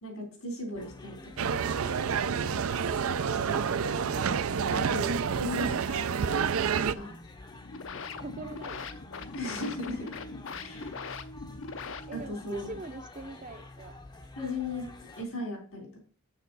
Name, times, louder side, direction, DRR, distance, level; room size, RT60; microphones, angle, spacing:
voice 1, 0.0-1.6 4.7-7.1 9.3-10.2 10.6-11.0 12.1-12.8 14.4-16.0, left 2 dB, 90° left, 0 dB, 3.7 m, -37 dB
sound 1, 0.7-15.2, left 2 dB, 20° left, 0.6 m, -48 dB
sound 2, 1.4-6.9, right 6 dB, 80° right, 0.4 m, -28 dB
voice 2, 2.8-4.0 8.2-8.9 12.1-14.0, right 3 dB, 35° right, 10 dB, 0.6 m, -43 dB
sound 3, 7.5-12.5, left 4 dB, 65° left, 0.6 m, -41 dB
7.0 x 6.7 x 4.0 m, 0.39 s
head